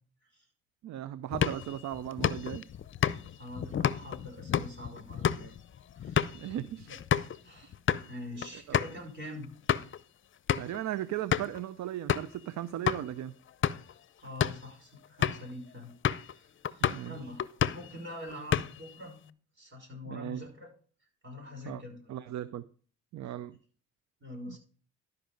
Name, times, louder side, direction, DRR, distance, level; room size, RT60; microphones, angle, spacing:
voice 1, 0.8-2.6 6.3-6.9 8.7-8.8 10.6-13.3 16.8-17.2 20.1-20.5 21.7-21.8 22.1-22.6 23.1-23.6 24.5-24.6, right 12 dB, 65° right, 15 dB, 0.5 m, -37 dB
sound 1, 1.3-7.4 7.7-8.1 8.4-8.5 8.7-8.9 9.4-10.0 10.5-10.8 11.3-11.6 12.1-12.4 12.9-13.0 13.5-13.9 14.3-14.7 15.2-15.5 16.0-16.3 16.6-17.1 17.4-17.9 18.3-18.9, left 9 dB, 40° left, 0.6 m, -30 dB
voice 2, 3.4-5.5 5.9-6.6 6.8-7.0 7.4-7.7 8.1-9.5 14.2-15.9 16.2-17.4 17.7-19.2 19.6-20.7 21.2-22.1 24.2-24.6, left 1 dB, 40° right, 0 dB, 5.8 m, -44 dB
12.5 x 5.3 x 5.2 m, 0.42 s
cardioid pair, 90°, 30 cm